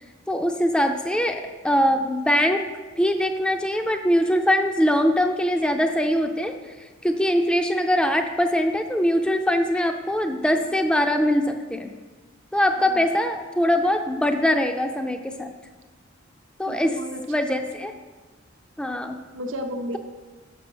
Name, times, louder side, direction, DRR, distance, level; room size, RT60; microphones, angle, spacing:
voice 1, 0.3-2.7 3.0-6.5 7.0-11.9 12.5-15.5 16.6-17.0 17.3-17.9 18.8-19.2, equal, 5° left, 5 dB, 0.3 m, -22 dB
voice 2, 16.7-17.2 17.5-17.6 19.3-20.0, equal, 85° right, 5 dB, 0.7 m, -33 dB
6.2 x 6.0 x 6.1 m, 1.3 s
head